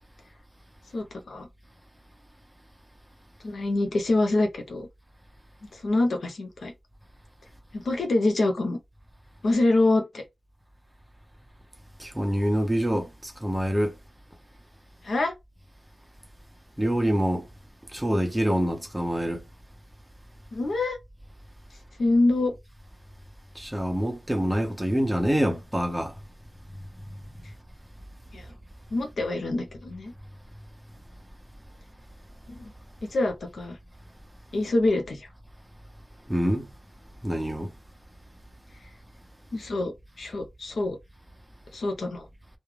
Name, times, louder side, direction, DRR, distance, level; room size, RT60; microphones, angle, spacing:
voice 1, 0.9-1.5 3.4-4.9 5.8-6.7 7.7-8.8 9.4-10.2 15.0-15.3 20.5-21.0 22.0-22.5 28.3-28.4 28.9-30.1 32.5-32.7 33.1-33.8 34.5-35.3 39.5-41.0 41.7-42.3, left 2 dB, 80° left, 0.7 m, -25 dB
voice 2, 12.0-13.9 16.8-17.5 17.9-19.4 23.5-26.1 36.3-36.7 37.2-37.7, equal, 10° right, 0.9 m, -26 dB
2.3 x 2.1 x 3.2 m
cardioid pair, 55°, 0 cm